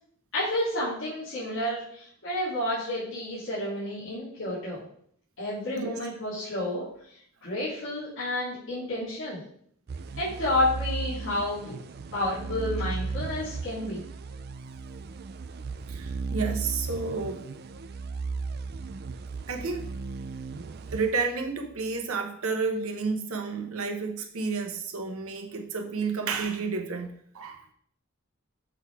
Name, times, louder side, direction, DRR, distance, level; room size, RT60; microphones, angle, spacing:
voice 1, 0.3-4.8 5.4-6.8 7.4-9.4 10.2-11.7 12.1-14.0, left 1 dB, 65° left, -12 dB, 3.1 m, -30 dB
sound 1, 9.9-21.7, right 4 dB, 50° right, 0.4 m, -36 dB
voice 2, 15.9-17.4 19.5-19.9 20.9-27.7, right 4 dB, 85° right, 3 dB, 1.0 m, -31 dB
7.1 x 4.0 x 4.7 m, 0.65 s
head